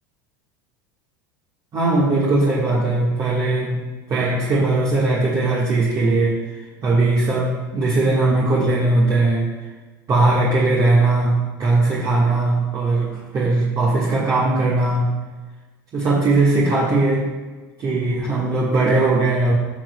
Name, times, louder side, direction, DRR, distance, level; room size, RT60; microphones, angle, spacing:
voice 1, 1.7-6.4 6.8-9.5 10.1-15.2 15.9-17.3 17.8-19.5, right 2 dB, 35° right, -5 dB, 1.5 m, -19 dB
13.0 x 6.1 x 2.2 m, 1.3 s
supercardioid pair, 110°, 11 cm